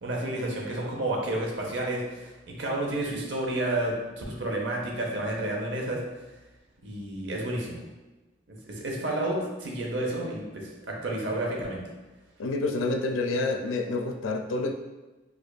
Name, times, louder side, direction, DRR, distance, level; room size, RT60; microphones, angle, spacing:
voice 1, 0.0-6.0 6.8-7.8 8.7-11.8, right 1 dB, 65° right, -1 dB, 0.7 m, -30 dB
voice 2, 12.4-14.7, left 2 dB, 85° left, 5 dB, 0.4 m, -28 dB
4.8 x 2.4 x 2.3 m, 1.1 s
head